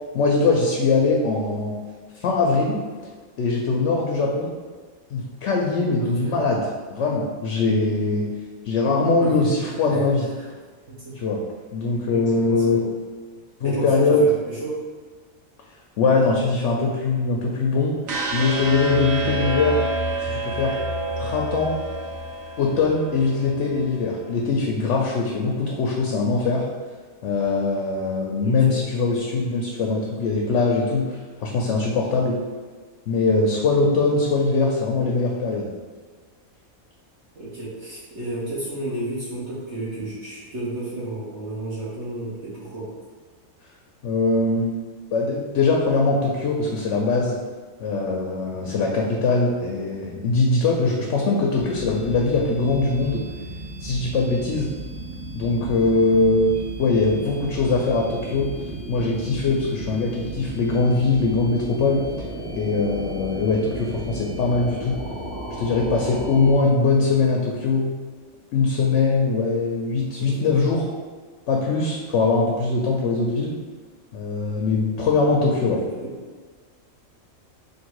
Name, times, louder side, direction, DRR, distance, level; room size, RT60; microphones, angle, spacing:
voice 1, 0.1-1.7 2.2-2.8 3.4-4.5 5.1-6.6 6.9-8.2 8.6-10.2 11.2-11.4 11.7-12.8 13.6-14.2 16.0-17.9 18.3-19.8 20.2-20.8 21.2-21.7 22.6-26.6 27.2-32.4 33.1-35.7 44.0-44.7 45.1-47.4 47.8-53.2 53.8-54.7 55.3-56.5 56.8-58.5 58.9-62.0 62.6-65.0 65.6-67.9 68.5-70.9 71.5-73.5 74.1-75.8, left 3 dB, 65° left, -1 dB, 0.8 m, -21 dB
voice 2, 6.0-6.4 9.2-10.0 10.4-10.5 10.9-11.2 12.1-12.9 13.6-14.8 28.4-28.8 37.3-42.9 51.4-51.7 57.1-57.4 70.2-70.5 75.7-76.2, right 2 dB, 55° right, -8 dB, 1.2 m, -32 dB
sound 1, 18.1-24.1, right 1 dB, 75° right, 1.2 m, -28 dB
sound 2, 51.5-66.5, right 1 dB, 5° left, 0.6 m, -34 dB
3.7 x 2.6 x 4.6 m, 1.5 s
omnidirectional pair, 1.4 m